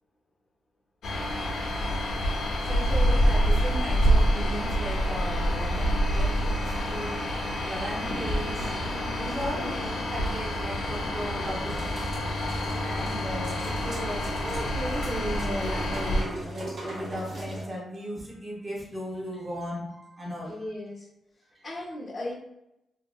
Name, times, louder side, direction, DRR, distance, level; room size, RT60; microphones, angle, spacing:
sound 1, 1.0-16.2, equal, 85° left, 0.7 m, -27 dB
voice 1, 2.6-7.2 7.6-8.7 9.1-9.8 10.1-12.1 12.7-20.7 21.6-21.7, equal, 30° right, -3 dB, 0.9 m, -36 dB
voice 2, 9.4-10.0 12.7-13.2 20.4-21.1 21.6-22.3, left 2 dB, 30° left, -6 dB, 0.7 m, -38 dB
sound 2, 11.7-17.6, right 1 dB, 75° right, 1.3 m, -37 dB
2.8 x 2.7 x 2.3 m, 0.85 s
wide cardioid pair, 125°, 0 cm